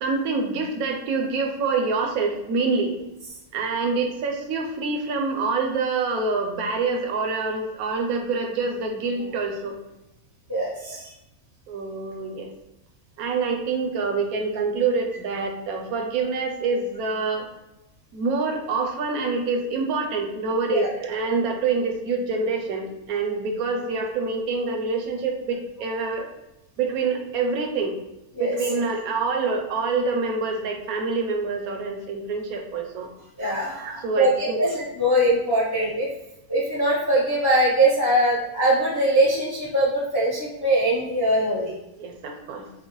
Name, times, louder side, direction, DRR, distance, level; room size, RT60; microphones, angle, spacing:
voice 1, 0.0-2.9 3.5-9.8 10.9-11.0 11.7-12.5 13.2-17.5 18.1-26.3 26.8-27.9 28.4-33.1 33.8-34.7 35.6-35.7 42.0-42.6, right 4 dB, 80° right, 3 dB, 1.1 m, -26 dB
voice 2, 10.5-11.1 20.7-20.9 28.4-28.5 33.4-33.9 34.2-36.1 36.5-41.7, right 1 dB, 25° left, -6 dB, 0.6 m, -22 dB
5.3 x 2.1 x 3.0 m, 0.94 s
omnidirectional pair, 1.6 m